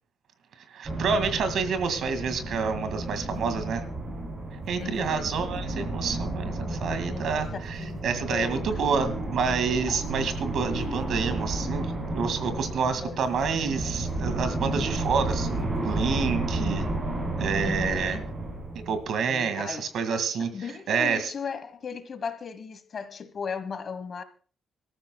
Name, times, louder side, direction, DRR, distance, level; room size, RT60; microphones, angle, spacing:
voice 1, 0.7-3.8 4.7-16.9 17.4-18.2 18.8-20.5 20.9-21.3, right 5 dB, 70° right, 2.0 m, -28 dB
sound 1, 0.8-19.3, right 2 dB, 30° right, 4.8 m, -32 dB
voice 2, 4.8-5.3 6.6-7.5 7.8-8.6 9.9-10.0 13.0-13.2 17.6-18.3 19.3-19.9 20.5-24.2, left 6 dB, 40° left, 1.3 m, -36 dB
25.5 x 13.5 x 2.3 m
wide cardioid pair, 165°, 0 cm